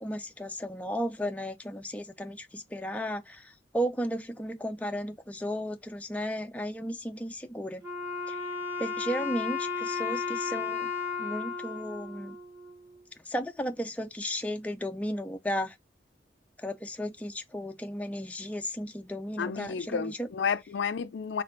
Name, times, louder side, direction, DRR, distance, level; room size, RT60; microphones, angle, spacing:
voice 1, 0.0-7.8 8.3-8.4 8.8-10.9 11.2-12.4 13.3-15.8 16.6-20.3, equal, 10° left, 0.4 m, -34 dB
Wind instrument woodwind instrument, 7.8-13.0, left 5 dB, 15° right, 1.6 m, -34 dB
voice 2, 19.4-21.4, left 6 dB, 70° left, 0.4 m, -31 dB
4.2 x 3.3 x 3.8 m
head